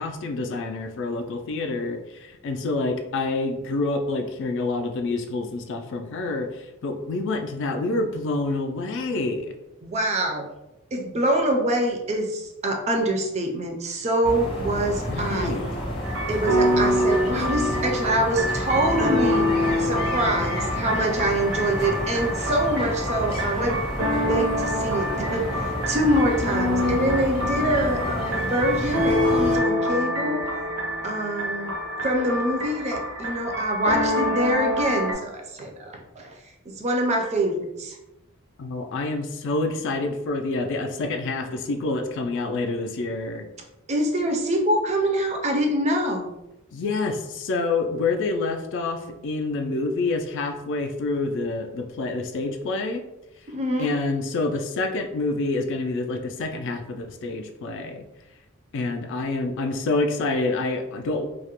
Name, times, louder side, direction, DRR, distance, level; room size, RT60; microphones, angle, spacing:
voice 1, 0.0-9.5 15.1-15.6 38.6-43.4 46.7-53.0 53.8-58.0 58.7-61.3, left 3 dB, 60° left, 6 dB, 0.3 m, -27 dB
voice 2, 9.8-10.5 10.9-15.6 16.3-19.5 19.8-23.9 24.2-30.5 31.0-31.7 32.0-36.3 36.7-38.0 43.9-46.3 53.5-53.9, right 1 dB, 30° right, 2 dB, 0.4 m, -25 dB
sound 1, 14.2-29.6, left 1 dB, 25° left, 0.7 m, -30 dB
sound 2, 16.0-35.1, equal, 90° right, 0.7 m, -26 dB
2.3 x 2.0 x 2.9 m, 0.93 s
head